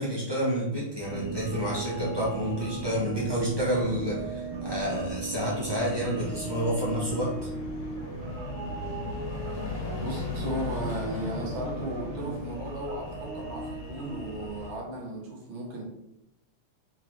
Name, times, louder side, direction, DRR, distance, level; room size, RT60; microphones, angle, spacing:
voice 1, 0.0-7.5, equal, 25° right, -6 dB, 0.5 m, -29 dB
sound 1, 1.0-14.7, left 3 dB, 75° left, 2.0 m, -39 dB
sound 2, 1.1-14.8, right 4 dB, 90° right, 1.7 m, -38 dB
voice 2, 10.0-15.8, right 1 dB, 70° right, -1 dB, 1.8 m, -35 dB
4.5 x 3.7 x 3.1 m, 0.83 s
omnidirectional pair, 2.4 m